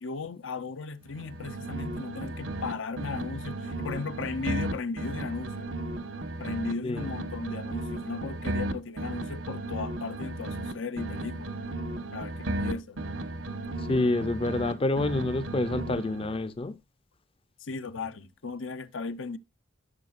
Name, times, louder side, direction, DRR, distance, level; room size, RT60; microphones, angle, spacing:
voice 1, 0.0-5.7 6.4-11.5 12.1-13.0 17.6-19.4, left 4 dB, 70° left, 0.7 m, -36 dB
sound 1, 1.1-2.7 3.0-6.7 7.0-10.7 11.0-14.7 15.0-16.4, right 1 dB, 80° right, 1.2 m, -35 dB
voice 2, 13.9-16.8, left 2 dB, 30° left, 0.5 m, -27 dB
13.5 x 5.7 x 2.5 m
head